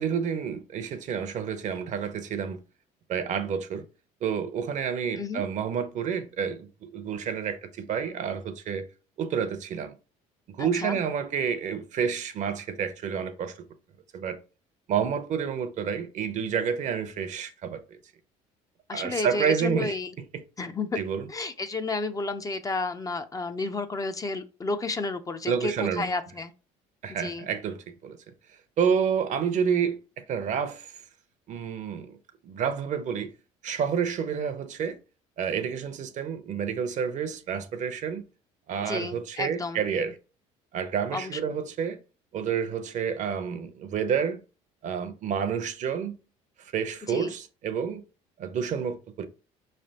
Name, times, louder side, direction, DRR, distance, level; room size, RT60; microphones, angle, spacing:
voice 1, 0.0-2.6 3.1-3.8 4.2-8.9 9.2-9.9 10.5-13.5 14.1-14.4 14.9-18.0 18.9-19.9 21.0-21.3 25.5-26.1 27.0-28.2 28.8-30.9 31.5-32.2 32.4-33.3 33.6-35.0 35.4-38.2 38.7-40.2 40.7-42.0 42.3-44.4 44.8-46.2 46.6-48.0 48.4-49.3, right 7 dB, 50° right, 0.7 m, -29 dB
voice 2, 10.6-11.0 18.9-20.1 20.6-20.9 21.3-26.5 27.2-27.5 38.9-39.8 41.1-41.4 47.1-47.3, left 3 dB, 20° left, 0.5 m, -31 dB
4.8 x 3.3 x 2.8 m
supercardioid pair, 85°, 15 cm